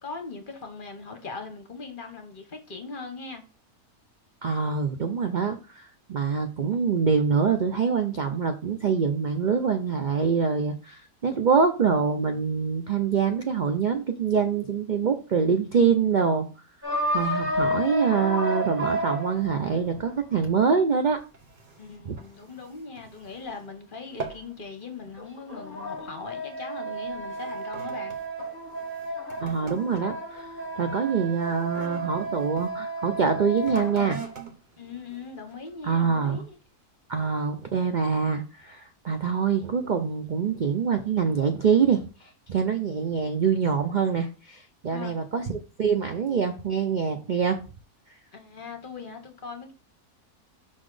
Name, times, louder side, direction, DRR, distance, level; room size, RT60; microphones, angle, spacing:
voice 1, 0.0-3.4 21.8-28.1 34.8-36.6 44.9-45.1 48.3-49.7, left 4 dB, 40° left, 1.1 m, -40 dB
voice 2, 4.4-16.5 17.1-21.2 22.1-22.2 29.4-30.5 30.8-34.2 35.8-36.4 37.1-47.6, right 6 dB, 65° right, 0.4 m, -25 dB
sound 1, 16.8-20.5 25.2-34.3, right 1 dB, 10° right, 1.2 m, -32 dB
sound 2, 21.1-23.7 24.0-24.6 24.9-25.3 25.9-26.2 26.9-32.7 33.5-35.9 36.4-36.5, right 5 dB, 35° right, 0.9 m, -44 dB
5.8 x 4.0 x 4.8 m
omnidirectional pair, 1.6 m